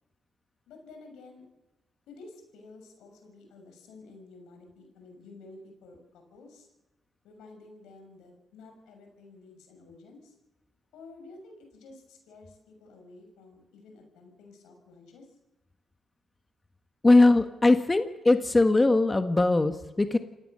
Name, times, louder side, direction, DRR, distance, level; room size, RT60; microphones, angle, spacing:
voice 1, 0.7-1.4 2.1-6.7 7.2-10.3 10.9-15.3, left 3 dB, 85° left, 4 dB, 6.4 m, -51 dB
voice 2, 17.0-20.2, left 2 dB, 20° left, 8 dB, 1.6 m, -21 dB
27.5 x 17.5 x 6.7 m, 1.1 s
cardioid pair, 70°, 0 cm